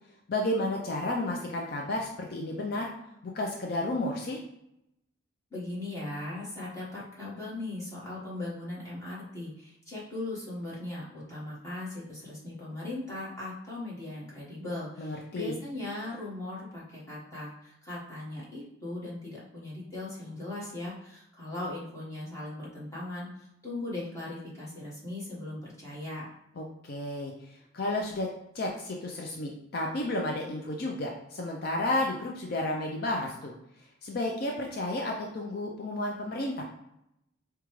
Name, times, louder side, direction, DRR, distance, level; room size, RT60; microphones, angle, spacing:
voice 1, 0.3-2.9 3.2-4.4 15.0-15.5 26.6-28.3 28.5-33.5 34.0-36.6, left 1 dB, 45° left, 0 dB, 0.4 m, -32 dB
voice 2, 5.5-23.3 23.6-26.3, left 2 dB, 15° left, -7 dB, 1.3 m, -38 dB
4.9 x 2.3 x 3.1 m, 0.82 s
head